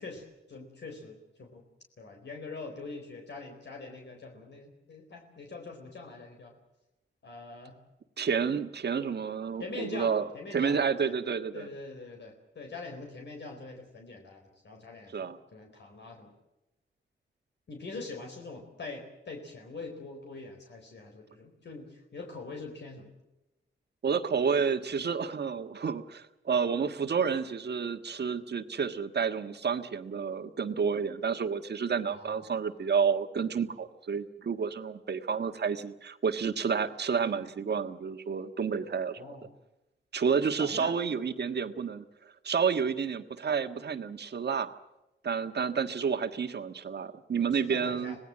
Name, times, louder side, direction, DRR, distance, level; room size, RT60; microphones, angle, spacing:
voice 1, 0.0-1.7 2.0-6.6 7.2-7.8 9.6-11.1 11.5-16.3 17.7-23.1 32.1-32.5 39.2-39.5 40.6-41.0 47.5-48.2, left 3 dB, 60° left, 2 dB, 4.3 m, -43 dB
voice 2, 8.2-10.3 10.5-11.7 15.1-15.4 24.0-39.2 40.1-42.1 42.4-44.7 45.2-48.2, right 6 dB, 55° right, 8 dB, 1.6 m, -30 dB
26.0 x 18.5 x 7.6 m, 0.98 s
wide cardioid pair, 120°, 20 cm